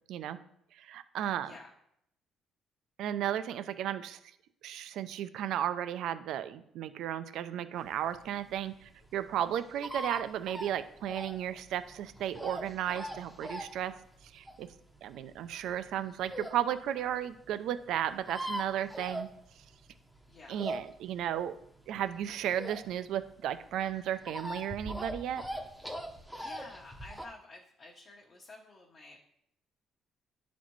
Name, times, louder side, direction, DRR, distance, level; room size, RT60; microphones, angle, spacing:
voice 1, 0.8-1.5 3.0-4.2 4.6-14.0 14.3-14.7 15.0-19.3 20.5-21.5 21.9-25.5, right 10 dB, 70° right, 12 dB, 0.4 m, -34 dB
sound 1, 8.0-16.6 17.1-17.2 17.4-17.5 17.6-17.7 17.9-19.8 20.2-23.2 23.5-27.3, equal, ahead, 0.7 m, -41 dB
voice 2, 20.3-20.6 26.4-29.2, left 3 dB, 35° left, -2 dB, 1.0 m, -51 dB
10.5 x 4.1 x 3.1 m, 0.74 s
cardioid pair, 130°, 0 cm